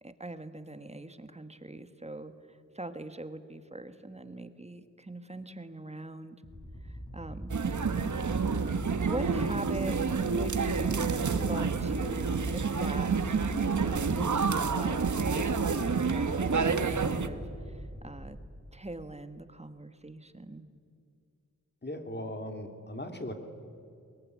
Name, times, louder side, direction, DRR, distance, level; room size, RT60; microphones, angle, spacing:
voice 1, 0.0-6.4 6.8-7.6 9.1-13.5 13.8-18.4 18.7-20.7, right 2 dB, 20° right, 10 dB, 1.6 m, -42 dB
sound 1, 6.5-18.3, equal, 15° left, 7.6 m, -43 dB
sound 2, 7.5-17.3, right 5 dB, 70° right, 1.4 m, -29 dB
voice 2, 21.8-23.3, left 1 dB, 35° left, 6 dB, 3.1 m, -38 dB
22.0 x 22.0 x 9.7 m, 2.4 s
wide cardioid pair, 70°, 30 cm